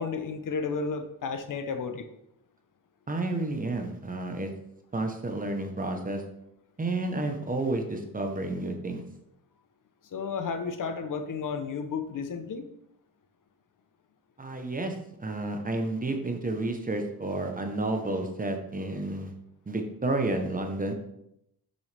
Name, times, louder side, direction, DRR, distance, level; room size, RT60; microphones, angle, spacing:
voice 1, 0.0-2.1 10.0-12.7, left 5 dB, 60° left, 8 dB, 0.8 m, -32 dB
voice 2, 3.1-4.5 4.9-6.2 6.8-9.0 14.4-19.3 19.7-20.9, right 2 dB, 25° right, 4 dB, 1.0 m, -31 dB
6.6 x 6.4 x 3.4 m, 0.79 s
wide cardioid pair, 130°, 36 cm